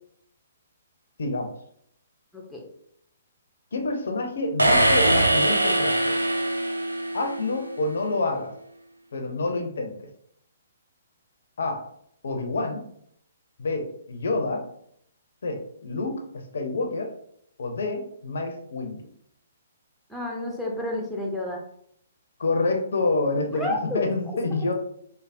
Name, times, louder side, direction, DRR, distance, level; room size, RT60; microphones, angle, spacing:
voice 1, 3.7-6.1 7.1-8.5 9.1-10.1 11.6-11.8 12.2-12.8 13.6-14.6 15.4-16.2 16.5-17.1 17.6-19.0 22.4-24.7, left 3 dB, 60° left, 4 dB, 0.5 m, -27 dB
sound 1, 4.6-7.4, right 1 dB, 90° right, 0.3 m, -21 dB
voice 2, 20.1-21.6 23.5-24.0, left 1 dB, ahead, -1 dB, 0.5 m, -30 dB
3.3 x 2.0 x 2.5 m, 0.68 s
figure-of-eight pair, 125°, 0 cm